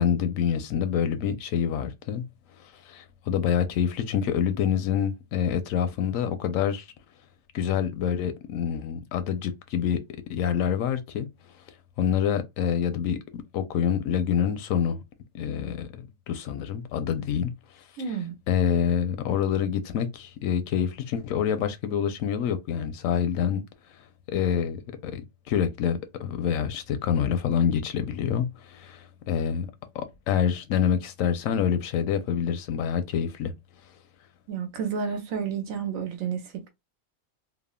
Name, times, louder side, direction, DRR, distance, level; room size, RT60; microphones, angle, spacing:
voice 1, 0.0-2.2 2.9-6.8 7.5-10.0 10.3-11.3 12.0-15.0 15.3-17.5 18.5-23.6 24.3-29.7 29.9-33.5, left 8 dB, 80° left, 1.0 m, -26 dB
voice 2, 18.0-18.4 34.5-36.7, right 6 dB, 80° right, 1.1 m, -31 dB
3.4 x 2.0 x 2.2 m
omnidirectional pair, 1.4 m